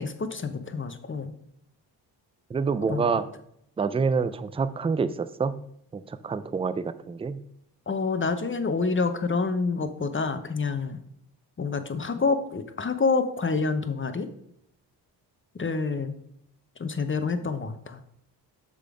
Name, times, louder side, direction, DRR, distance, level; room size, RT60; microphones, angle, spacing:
voice 1, 0.0-1.3 2.9-3.2 7.9-11.0 11.6-14.3 15.5-16.1 16.8-18.0, left 4 dB, 25° left, 9 dB, 0.8 m, -27 dB
voice 2, 2.5-3.3 3.8-5.6 5.9-7.4, right 5 dB, 15° right, 13 dB, 0.4 m, -27 dB
6.4 x 3.8 x 4.9 m, 0.73 s
supercardioid pair, 55°, 45 cm